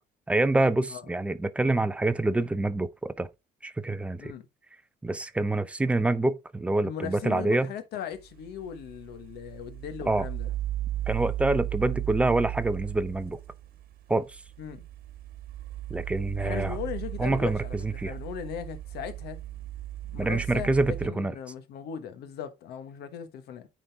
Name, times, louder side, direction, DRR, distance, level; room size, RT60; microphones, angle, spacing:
voice 1, 0.3-3.3 3.6-4.3 5.0-7.7 10.1-10.3 11.1-13.4 14.1-14.3 15.9-16.8 17.2-18.1 20.2-21.3, right 2 dB, 5° right, 0.4 m, -26 dB
voice 2, 6.8-10.5 14.6-14.8 16.4-19.4 20.0-23.7, left 9 dB, 80° left, 1.2 m, -38 dB
sound 1, 8.2-21.1, right 14 dB, 60° right, 1.5 m, -36 dB
9.1 x 3.9 x 3.5 m
cardioid pair, 145°, 17 cm